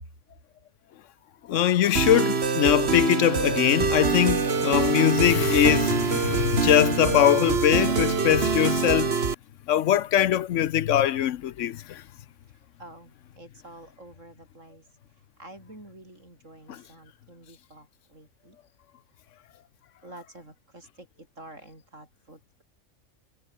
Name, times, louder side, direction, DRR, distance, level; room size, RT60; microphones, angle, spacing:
voice 1, 1.4-9.2 9.7-12.0 16.7-16.8, left 11 dB, 70° left, 1.0 m, -22 dB
sound 1, 2.0-9.3, right 5 dB, 55° right, 1.9 m, -25 dB
voice 2, 12.8-14.8 15.4-18.6 20.0-22.6, right 1 dB, 75° right, 8.3 m, -48 dB
omnidirectional pair, 1.3 m